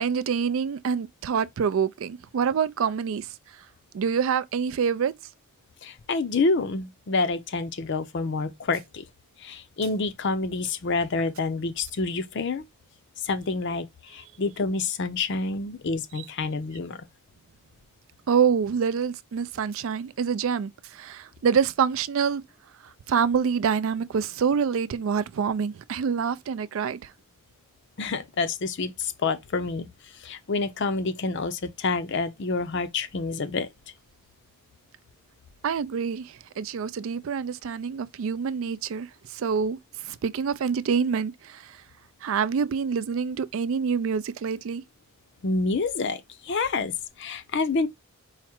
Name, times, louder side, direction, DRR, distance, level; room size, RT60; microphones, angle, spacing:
voice 1, 0.0-3.6 3.9-5.1 18.3-22.4 22.8-27.1 35.6-41.8 42.2-44.8, right 6 dB, 65° right, 0.3 m, -26 dB
voice 2, 5.8-9.0 9.4-12.6 13.2-17.0 28.0-29.9 30.1-33.7 45.4-47.9, left 3 dB, 55° left, 0.5 m, -28 dB
4.8 x 2.1 x 4.3 m
head